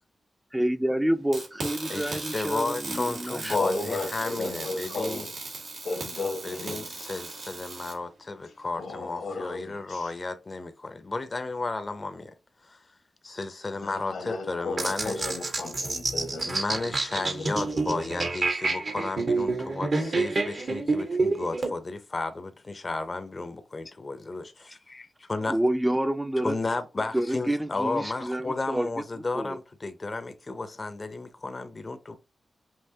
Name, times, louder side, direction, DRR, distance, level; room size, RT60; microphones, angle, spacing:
voice 1, 0.5-3.6 25.5-26.6 27.1-29.0 29.3-29.6, right 1 dB, 10° right, 0.5 m, -28 dB
sound 1, 1.3-7.9, right 3 dB, 90° right, 1.8 m, -38 dB
voice 2, 1.9-5.3 6.4-12.3 12.6-12.8 13.2-15.3 16.4-25.6 26.4-32.2, left 3 dB, 40° left, 0.6 m, -33 dB
voice 3, 3.5-5.3 5.8-7.0 8.8-10.1 13.7-18.0, left 3 dB, 90° left, 1.3 m, -34 dB
sound 2, 14.8-21.7, right 3 dB, 60° right, 1.1 m, -28 dB
5.6 x 2.8 x 2.7 m
cardioid pair, 60°, 0 cm